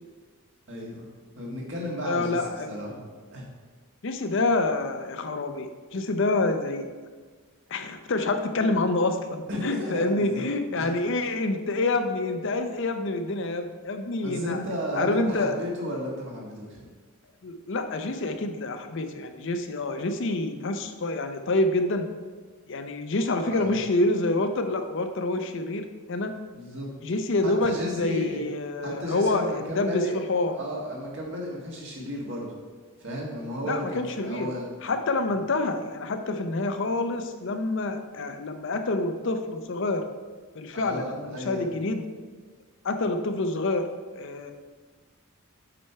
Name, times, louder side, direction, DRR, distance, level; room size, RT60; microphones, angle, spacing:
voice 1, 0.7-1.1 1.4-3.0 3.3-3.5 9.5-10.5 10.8-11.0 14.2-16.9 23.4-23.8 26.5-26.9 27.4-28.4 28.8-30.2 30.5-32.5 33.0-34.7 40.7-41.7, left 1 dB, 55° right, -3 dB, 1.7 m, -33 dB
voice 2, 2.0-2.7 4.0-6.8 7.7-14.6 14.9-15.5 17.4-22.1 22.7-26.3 27.0-30.5 33.6-34.5 34.8-40.0 40.5-42.0 42.8-43.9 44.1-44.5, left 2 dB, 55° left, 7 dB, 0.6 m, -27 dB
7.6 x 4.4 x 4.5 m, 1.5 s
head